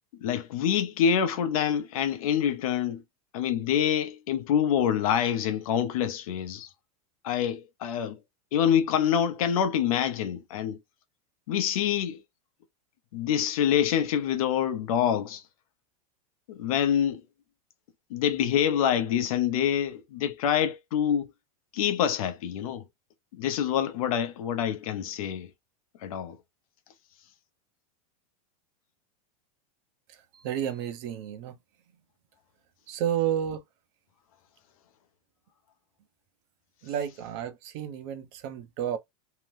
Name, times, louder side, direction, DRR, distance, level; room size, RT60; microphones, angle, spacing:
voice 1, 0.2-3.0 3.3-6.7 7.2-8.2 8.5-10.8 11.5-12.2 13.1-15.4 16.5-17.2 18.1-21.3 21.7-22.8 23.3-25.5 26.0-26.4, left 9 dB, 70° left, 0.7 m, -26 dB
voice 2, 30.3-31.5 32.9-33.6 36.8-39.0, right 10 dB, 45° right, 0.7 m, -31 dB
2.8 x 2.0 x 3.2 m
supercardioid pair, 155°, 19 cm